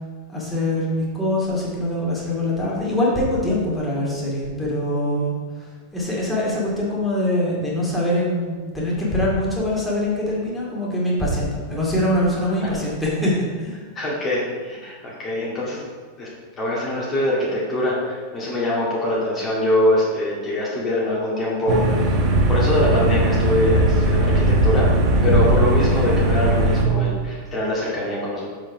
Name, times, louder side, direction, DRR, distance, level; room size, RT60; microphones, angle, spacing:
voice 1, 0.3-5.4 5.9-13.8, left 1 dB, 5° left, -6 dB, 2.3 m, -23 dB
voice 2, 13.9-15.8 16.2-16.3 16.6-22.1 22.5-24.9 25.2-28.5, left 1 dB, 25° left, -6 dB, 2.1 m, -23 dB
sound 1, 21.7-26.8, right 1 dB, 30° right, 1.4 m, -18 dB
7.3 x 5.0 x 4.9 m, 1.5 s
figure-of-eight pair, 90°, 0 cm